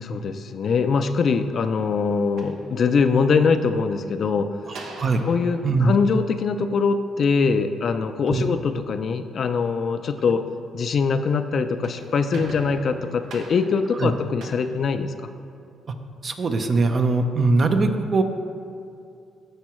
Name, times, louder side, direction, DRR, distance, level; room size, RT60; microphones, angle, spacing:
voice 1, 0.0-4.6 5.3-10.4 10.7-15.1, left 5 dB, 55° left, 9 dB, 0.4 m, -22 dB
sound 1, 2.4-3.4 4.7-7.2 11.6-15.7, right 3 dB, 75° right, 0.8 m, -43 dB
voice 2, 4.7-5.2 5.6-5.9 8.3-8.5 14.0-14.1 16.2-18.2, right 3 dB, 45° right, 6 dB, 0.6 m, -21 dB
13.0 x 4.7 x 3.1 m, 2.4 s
cardioid pair, 90°, 0 cm